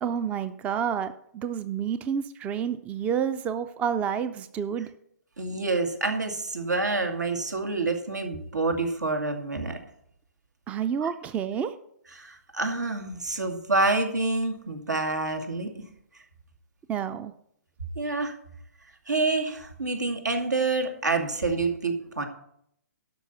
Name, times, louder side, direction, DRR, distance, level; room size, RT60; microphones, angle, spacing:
voice 1, 0.0-4.9 10.7-11.7 16.9-17.3, right 8 dB, 15° right, 13 dB, 0.4 m, -29 dB
voice 2, 5.4-9.8 11.0-11.1 12.2-15.7 18.0-18.3 19.1-22.3, right 3 dB, 80° right, 5 dB, 2.3 m, -27 dB
12.5 x 5.9 x 6.9 m, 0.71 s
figure-of-eight pair, 130°, 9 cm